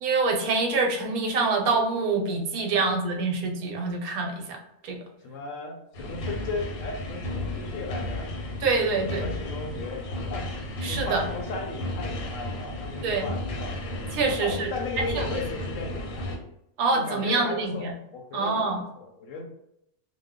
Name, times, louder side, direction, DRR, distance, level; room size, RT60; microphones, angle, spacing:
voice 1, 0.0-4.6 4.8-5.0 8.6-9.2 10.8-11.2 13.0-13.3 14.1-14.7 15.2-15.4 16.8-17.9 18.3-18.8, right 3 dB, 85° right, 3 dB, 1.1 m, -25 dB
voice 2, 5.2-8.3 8.9-14.0 14.4-16.4 16.9-19.4, left 3 dB, 70° left, 2 dB, 0.8 m, -36 dB
sound 1, 5.9-16.4, left 1 dB, 90° left, 1.3 m, -34 dB
2.6 x 2.2 x 3.5 m, 0.79 s
omnidirectional pair, 1.5 m